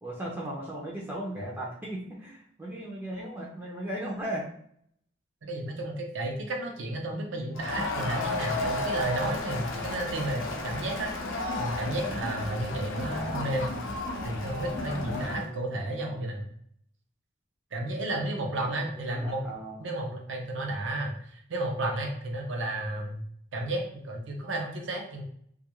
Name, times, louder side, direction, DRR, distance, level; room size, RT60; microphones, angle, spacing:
voice 1, 0.0-4.4 13.1-13.5 14.6-16.3 18.4-19.9, right 1 dB, 10° right, -4 dB, 0.4 m, -38 dB
voice 2, 5.4-11.1 11.6-13.7 14.2-16.5 17.7-19.4 19.8-23.2 23.5-25.2, right 1 dB, 70° right, 2 dB, 0.6 m, -32 dB
Crowd, 7.5-15.5, left 2 dB, 85° left, 0.5 m, -33 dB
2.3 x 2.2 x 2.9 m, 0.66 s
head